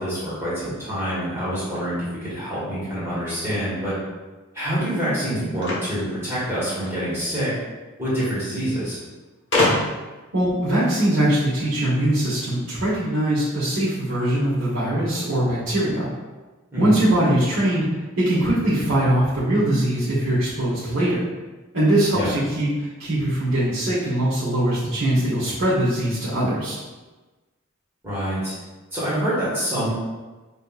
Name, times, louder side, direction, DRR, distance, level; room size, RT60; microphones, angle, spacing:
voice 1, 0.0-3.9 4.5-7.5 8.0-9.0 16.7-16.9 22.1-22.3 28.0-28.5 28.9-29.9, equal, 10° right, -11 dB, 1.5 m, -26 dB
sound 1, 5.6-7.0 8.1-8.2 8.4-8.5 9.5-10.2, left 2 dB, 50° left, 1.2 m, -23 dB
voice 2, 10.3-16.1 16.8-17.9 18.2-21.2 21.7-26.8, right 1 dB, 80° right, -10 dB, 1.1 m, -21 dB
5.6 x 2.7 x 2.4 m, 1.2 s
head